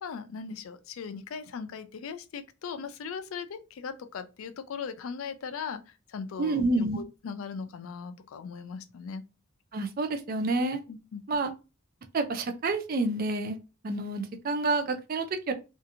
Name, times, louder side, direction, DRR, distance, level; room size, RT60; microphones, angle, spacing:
voice 1, 0.0-6.6 6.9-9.2 10.9-11.2, left 6 dB, 85° left, 0.4 m, -39 dB
voice 2, 6.4-7.0 9.7-10.8 11.3-11.5 12.1-13.6 13.8-15.5, right 2 dB, 45° right, 0.4 m, -28 dB
2.8 x 2.5 x 2.5 m
head